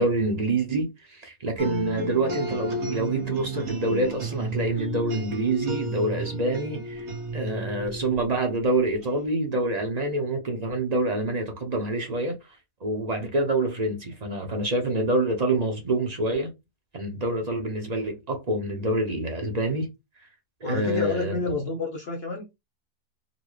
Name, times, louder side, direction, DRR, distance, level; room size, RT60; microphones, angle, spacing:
voice 1, 0.0-7.1 7.3-12.4 12.8-16.5 16.9-19.9 20.6-21.4, right 2 dB, 35° right, 0.6 m, -26 dB
sound 1, 1.6-9.1, right 2 dB, 65° right, 1.6 m, -33 dB
voice 2, 20.6-22.6, left 3 dB, 55° left, 0.7 m, -29 dB
4.0 x 2.1 x 3.1 m
omnidirectional pair, 1.7 m